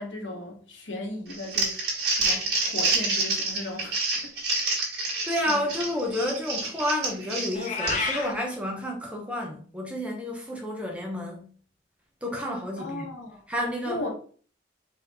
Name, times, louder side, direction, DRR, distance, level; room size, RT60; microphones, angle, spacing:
voice 1, 0.0-4.3 5.4-5.6 12.8-13.5 13.8-14.1, left 1 dB, 85° left, 1.3 m, -37 dB
Crumpling crinkling, 1.3-8.2, right 3 dB, 60° right, 1.7 m, -28 dB
voice 2, 5.2-11.5 12.2-13.0 13.5-14.0, left 1 dB, 5° right, 0.9 m, -30 dB
Meow, 7.5-8.3, left 4 dB, 40° left, 0.6 m, -29 dB
4.1 x 3.0 x 4.2 m
head